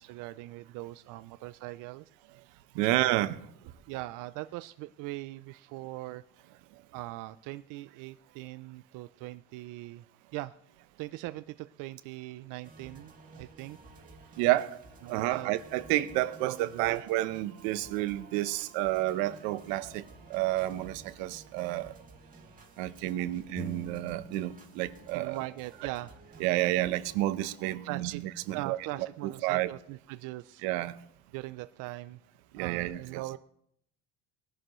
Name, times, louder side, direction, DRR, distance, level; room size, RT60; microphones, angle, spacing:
voice 1, 0.0-2.0 2.5-2.6 2.9-3.2 3.9-6.2 6.9-10.1 10.3-10.6 11.0-13.8 14.2-14.4 15.0-15.5 16.4-17.0 23.2-23.3 25.1-26.1 27.8-28.2 28.5-30.6 31.3-32.2 32.6-33.4, right 17 dB, 60° right, 0.5 m, -41 dB
voice 2, 2.7-3.4 14.4-14.8 15.1-20.0 20.3-21.9 22.8-25.4 25.8-25.9 26.4-29.7 30.6-30.9 32.5-33.2, right 16 dB, 85° right, 0.9 m, -30 dB
sound 1, 12.6-27.1, right 3 dB, 25° right, 2.3 m, -53 dB
sound 2, 23.6-25.1 25.3-27.1, left 1 dB, 10° left, 0.8 m, -48 dB
20.0 x 11.0 x 3.1 m
cardioid pair, 135°, 35 cm